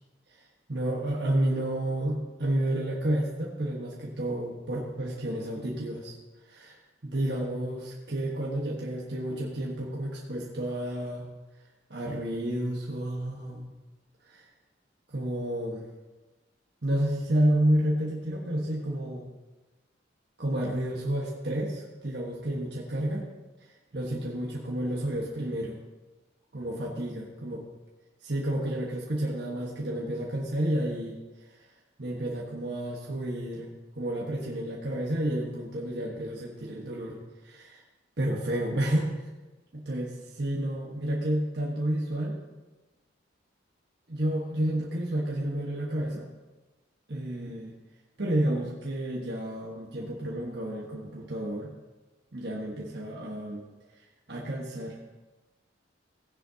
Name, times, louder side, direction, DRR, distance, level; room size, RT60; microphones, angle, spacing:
voice 1, 0.7-6.2 6.4-11.3 11.9-13.7 14.3-14.4 15.1-15.9 16.8-19.3 20.4-23.3 23.9-25.8 26.5-27.6 28.2-31.2 32.0-33.7 33.9-37.8 38.2-39.1 39.7-42.4 44.1-46.3 47.1-47.7 48.2-51.7 52.3-53.6 54.3-55.0, right 1 dB, 60° right, -3 dB, 1.4 m, -30 dB
16.0 x 10.0 x 2.8 m, 1.1 s
head